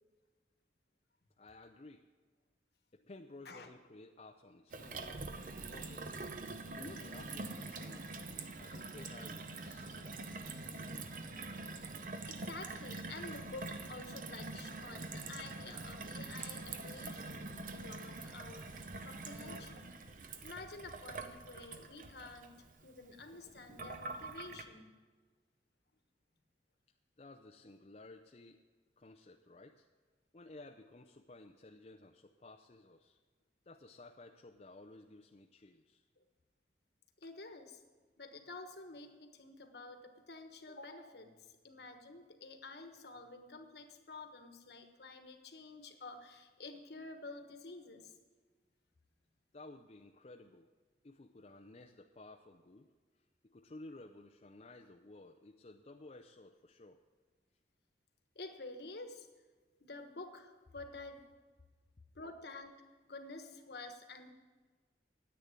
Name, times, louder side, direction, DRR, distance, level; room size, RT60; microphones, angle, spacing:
voice 1, 1.4-2.0 2.9-5.2 5.7-6.2 6.7-10.2 27.2-28.6 29.0-29.9 30.3-33.2 33.7-36.0 49.5-50.7 51.0-52.9 53.4-57.0, left 2 dB, 35° left, 3 dB, 0.5 m, -55 dB
Gurgling / Water tap faucet / Sink (filling or washing), 4.7-24.6, right 3 dB, 45° right, 0.8 m, -45 dB
voice 2, 12.3-19.9 20.4-22.5 22.8-25.0 37.2-37.8 38.2-41.4 41.6-48.1 58.3-59.3 59.8-61.2 62.1-62.7 63.1-64.3, left 3 dB, 65° left, 6 dB, 1.3 m, -50 dB
10.0 x 8.8 x 9.5 m, 1.4 s
head